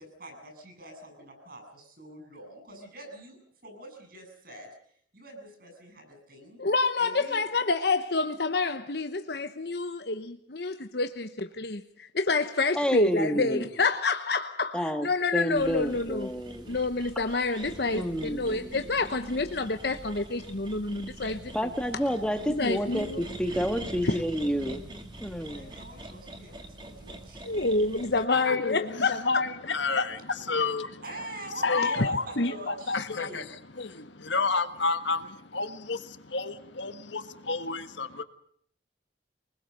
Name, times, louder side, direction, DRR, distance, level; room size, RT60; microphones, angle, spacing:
voice 1, 0.0-6.6 7.0-7.4 25.5-27.4 31.0-33.4, right 1 dB, 50° right, 7.5 m, -44 dB
voice 2, 6.6-16.3 16.7-21.5 22.6-23.2 24.0-24.2 27.4-29.2, left 3 dB, 55° left, 1.0 m, -28 dB
voice 3, 12.7-13.7 14.7-15.1 15.3-16.8 17.9-18.7 21.5-24.8 25.2-25.8, equal, 5° left, 1.5 m, -29 dB
sound 1, 15.6-28.2, right 1 dB, 25° right, 2.3 m, -44 dB
voice 4, 28.3-31.0 31.6-33.4 33.7-38.2, left 3 dB, 75° left, 1.6 m, -30 dB
23.5 x 20.5 x 6.7 m
head